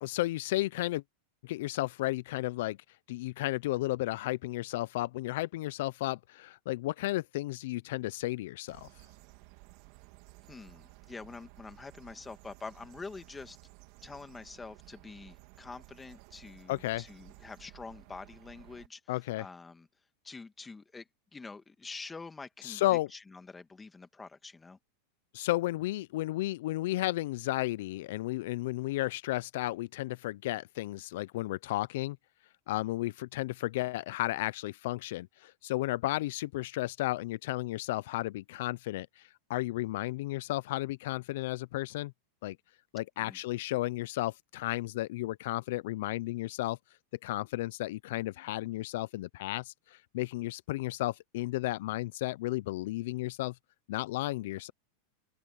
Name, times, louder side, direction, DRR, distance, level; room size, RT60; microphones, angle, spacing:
voice 1, 0.0-1.0 1.4-2.8 3.1-8.9 16.7-17.0 19.1-19.4 22.6-23.1 25.3-32.2 32.7-42.1 42.4-42.6 42.9-46.8 47.2-53.5 53.9-54.7, left 17 dB, 70° left, 0.4 m, -33 dB
high freq bird, 8.7-18.9, right 22 dB, 55° right, 2.2 m, -55 dB
voice 2, 10.5-13.6 14.0-19.0 19.4-19.9 20.2-24.8 43.2-43.4, left 4 dB, 10° left, 1.7 m, -46 dB
open air
supercardioid pair, 130°, 0 cm